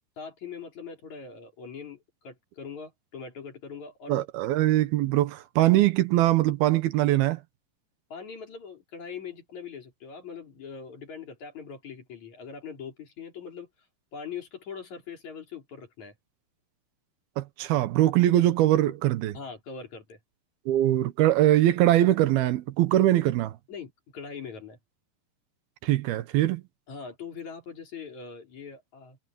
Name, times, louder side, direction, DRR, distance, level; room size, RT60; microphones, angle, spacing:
voice 1, 0.2-4.3 8.1-13.7 14.1-16.1 19.3-20.2 23.7-24.8 26.9-29.2, left 6 dB, 50° left, 5.3 m, -41 dB
voice 2, 4.1-7.4 17.4-19.4 20.7-23.6 25.8-26.6, right 14 dB, 85° right, 3.0 m, -22 dB
omnidirectional pair, 4.3 m